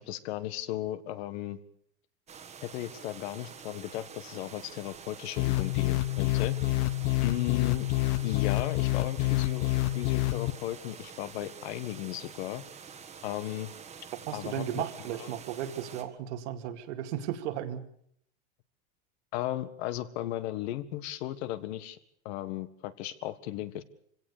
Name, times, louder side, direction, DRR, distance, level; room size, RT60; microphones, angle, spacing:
voice 1, 0.0-1.6 2.6-6.6 7.2-7.9 8.2-9.7 9.9-12.6 13.2-13.7 14.3-14.8 15.2-15.3 19.3-22.0 22.3-23.8, left 14 dB, 65° left, 13 dB, 1.7 m, -35 dB
sound 1, 2.3-16.0, right 6 dB, 20° right, 1.6 m, -47 dB
sound 2, 5.4-10.5, left 19 dB, 50° left, 1.1 m, -27 dB
voice 2, 14.3-17.8, right 11 dB, 75° right, 7 dB, 2.4 m, -35 dB
25.0 x 17.5 x 6.8 m, 0.65 s
supercardioid pair, 165°, 35 cm